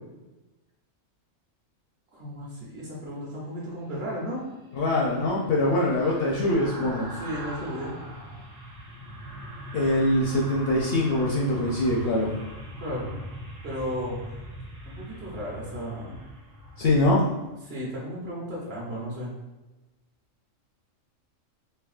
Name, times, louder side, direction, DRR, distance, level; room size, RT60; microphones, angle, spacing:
voice 1, 2.1-4.4 7.1-8.0 12.8-13.2 13.6-14.2 14.9-16.2 17.6-19.3, equal, 55° right, -5 dB, 1.1 m, -34 dB
sound 1, 4.2-17.5 17.9-18.1, equal, 85° right, 1.3 m, -41 dB
voice 2, 4.7-7.1 9.7-12.3 16.8-17.2, left 1 dB, 65° left, -3 dB, 0.6 m, -23 dB
3.5 x 2.7 x 2.4 m, 1.0 s
omnidirectional pair, 1.3 m